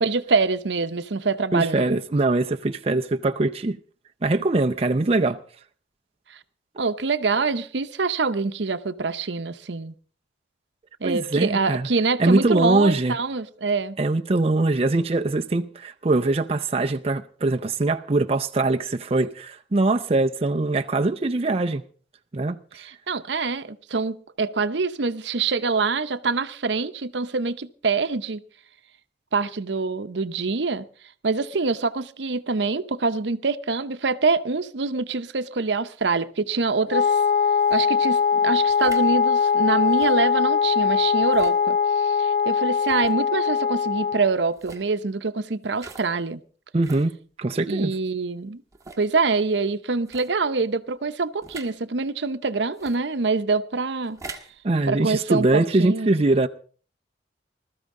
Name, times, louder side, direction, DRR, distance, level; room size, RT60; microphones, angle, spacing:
voice 1, 0.0-1.9 6.3-6.4 6.8-9.9 11.0-14.0 22.7-28.4 29.3-30.8 31.2-37.2 37.7-46.4 47.7-48.6 49.0-54.2 54.9-56.1, right 4 dB, 75° right, 0.8 m, -25 dB
voice 2, 1.5-3.8 4.2-5.4 11.0-11.9 12.2-13.2 14.0-21.8 22.3-22.6 46.7-47.1 47.4-47.9 54.6-56.5, right 2 dB, 35° right, 0.6 m, -22 dB
Wind instrument woodwind instrument, 36.9-44.3, left 6 dB, 40° left, 0.6 m, -21 dB
sound 1, 37.6-37.8 38.7-39.1 39.9-40.2 41.2-41.6 42.8-43.1 44.5-44.9 45.7-46.1 46.8-47.1 47.8-47.9 48.7-49.1 50.0-50.3 51.4-51.7 52.7-53.0 54.0-54.5, right 3 dB, 20° right, 1.5 m, -42 dB
20.5 x 13.0 x 3.7 m
head